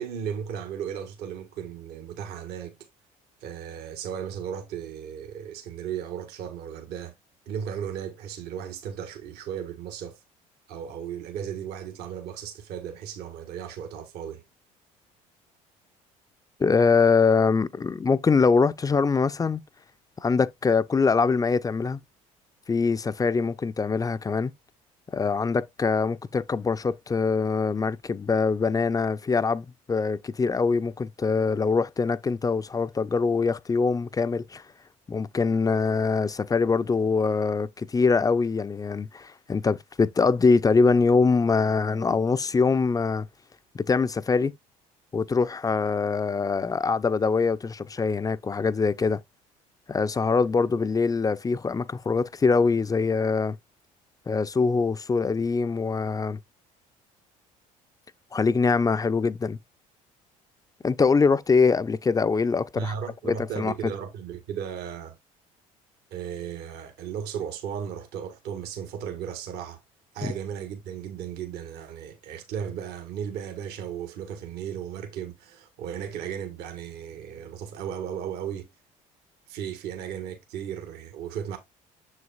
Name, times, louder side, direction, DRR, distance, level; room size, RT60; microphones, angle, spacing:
voice 1, 0.0-2.8 3.4-7.1 7.4-10.2 10.7-14.4 62.8-65.1 66.1-69.8 70.1-78.7 79.5-81.6, right 8 dB, 70° right, 1.6 m, -35 dB
voice 2, 16.6-19.6 20.2-22.0 22.7-24.5 25.1-34.6 35.1-43.3 43.7-44.5 45.1-49.2 49.9-53.6 54.3-56.4 58.3-59.6 60.8-62.9 63.2-63.7 70.2-70.3, left 4 dB, 20° left, 0.5 m, -23 dB
6.9 x 6.4 x 2.4 m
hypercardioid pair, 70°, 17 cm